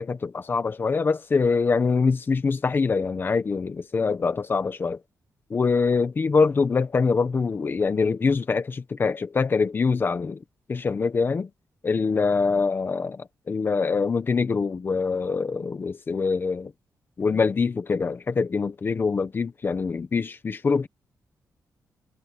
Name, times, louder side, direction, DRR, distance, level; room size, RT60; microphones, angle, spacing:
voice 1, 0.0-5.0 5.5-10.4 10.7-11.5 11.8-16.7 17.2-20.9, left 4 dB, 30° left, 1.0 m, -24 dB
wide cardioid pair, 160°, 7 cm